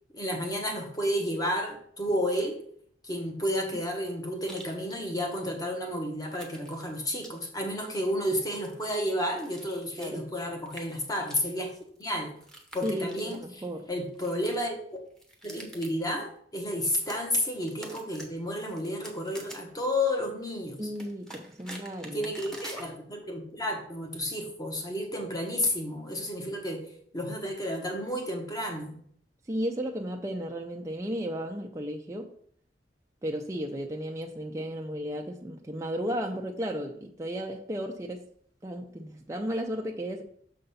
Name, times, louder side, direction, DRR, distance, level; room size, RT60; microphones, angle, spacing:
voice 1, 0.1-2.6 3.0-12.3 12.7-13.6 13.9-14.8 15.4-20.9 22.1-26.9 27.1-29.0, equal, 20° left, 2 dB, 1.3 m, -31 dB
sound 1, 4.4-5.2 5.5-5.6 6.3-7.6 7.9-10.2 10.7-13.7 14.0-14.7 15.1-16.0 17.0-18.3 18.5-19.8 20.8-22.9 23.7-23.8, right 1 dB, 5° left, 1.1 m, -47 dB
voice 2, 12.8-13.9 20.8-22.3 29.5-32.3 33.2-38.3 38.6-40.2, equal, 15° right, 1 dB, 0.5 m, -34 dB
6.5 x 4.0 x 5.5 m, 0.62 s
head